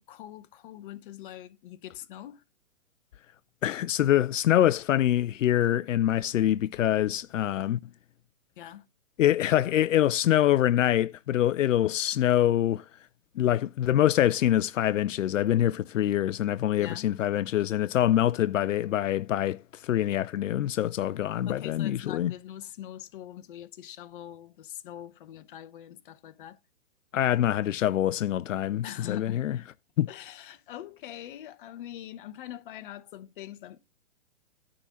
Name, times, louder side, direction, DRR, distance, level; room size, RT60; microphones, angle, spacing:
voice 1, 0.0-2.4 8.6-8.9 16.8-17.1 21.5-26.6 28.8-29.5 30.1-33.8, left 12 dB, 40° left, 0.9 m, -43 dB
voice 2, 3.6-7.8 9.2-12.9 13.4-22.3 27.1-29.6 30.0-30.1, left 12 dB, 80° left, 0.5 m, -25 dB
9.8 x 3.8 x 6.8 m
hypercardioid pair, 140°, 38 cm